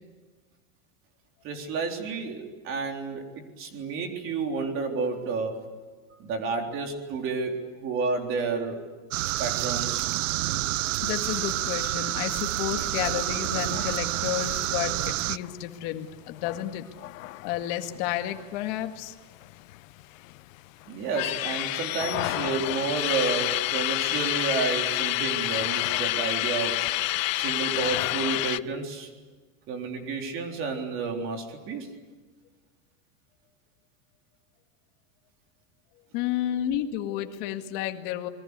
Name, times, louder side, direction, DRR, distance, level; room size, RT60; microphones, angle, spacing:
voice 1, 1.4-3.2 3.6-5.6 6.2-8.8 9.3-10.1 20.9-26.7 27.3-29.1 29.7-31.9, right 4 dB, 30° right, 3 dB, 3.8 m, -30 dB
sound 1, 9.1-15.4, right 17 dB, 70° right, 0.7 m, -28 dB
voice 2, 11.0-16.9 17.4-19.1 36.1-38.3, left 12 dB, 45° left, 6 dB, 2.0 m, -31 dB
sound 2, 13.6-18.8 19.1-19.2 19.4-20.4 20.8-28.6, left 18 dB, 75° left, 0.8 m, -29 dB
28.0 x 22.0 x 8.3 m, 1.4 s
supercardioid pair, 175°, 40 cm